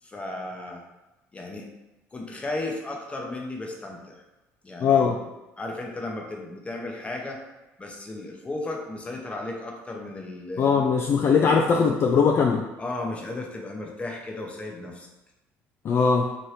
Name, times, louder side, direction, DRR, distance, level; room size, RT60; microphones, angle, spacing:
voice 1, 0.0-0.8 1.3-1.7 2.1-4.2 4.6-5.1 5.6-7.4 7.8-10.9 11.3-11.9 12.8-15.1, left 2 dB, 20° left, 0 dB, 0.7 m, -35 dB
voice 2, 4.8-5.2 10.6-12.6 15.8-16.3, left 5 dB, 45° left, 1 dB, 0.3 m, -20 dB
2.8 x 2.6 x 3.2 m, 1.0 s
supercardioid pair, 80°, 6 cm